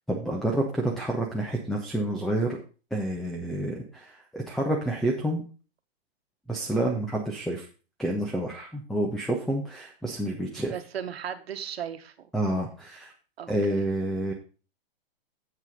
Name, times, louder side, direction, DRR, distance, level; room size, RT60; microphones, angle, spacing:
voice 1, 0.1-2.6 2.9-5.4 6.5-7.7 8.0-10.7 12.3-13.1 13.5-14.3, right 1 dB, ahead, 2 dB, 1.2 m, -29 dB
voice 2, 10.7-12.3 13.4-13.8, right 8 dB, 80° right, 9 dB, 1.4 m, -36 dB
8.1 x 7.1 x 5.2 m, 0.36 s
hypercardioid pair, 140°, 31 cm